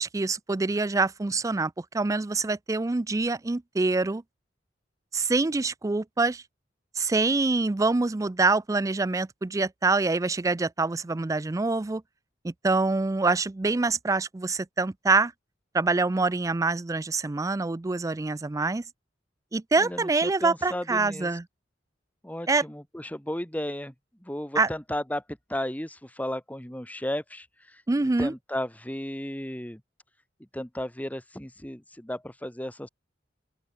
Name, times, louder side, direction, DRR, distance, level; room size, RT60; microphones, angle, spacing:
voice 1, 0.0-4.2 5.1-6.4 7.0-12.0 12.4-15.3 15.7-18.8 19.5-21.4 22.5-22.6 24.6-24.7 27.9-28.3, right 3 dB, 20° right, 0.4 m, -25 dB
voice 2, 19.8-21.3 22.2-23.9 24.2-29.8 30.5-32.9, left 1 dB, 10° left, 2.2 m, -34 dB
open air
head